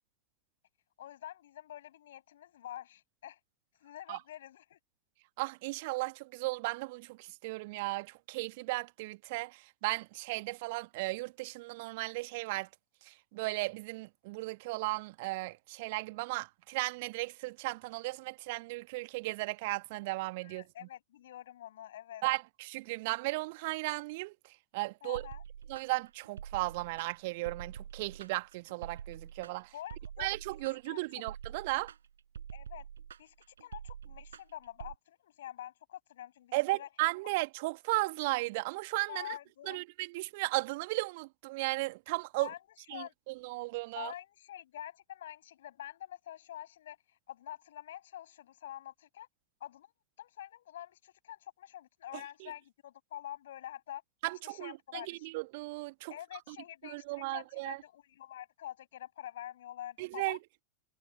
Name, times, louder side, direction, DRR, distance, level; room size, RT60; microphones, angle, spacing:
voice 1, 1.0-3.4 3.8-4.8 20.4-22.2 25.0-25.4 29.7-30.4 30.8-31.0 32.5-32.9 33.2-36.9 39.1-39.8 42.4-42.6 42.9-43.1 43.9-49.3 49.6-49.9 50.2-54.0 54.4-55.3 56.1-60.4, left 12 dB, 60° left, 7.1 m, -46 dB
voice 2, 5.4-12.7 13.0-20.6 22.2-24.3 24.7-25.2 25.7-29.7 30.2-31.9 36.5-39.3 39.6-42.5 42.9-44.1 52.4-52.5 54.2-56.1 56.5-56.6 56.8-57.8 60.0-60.4, right 23 dB, 50° right, 1.6 m, -35 dB
sound 1, 25.1-35.0, right 8 dB, 65° right, 6.2 m, -46 dB
figure-of-eight pair, 90°, 0 cm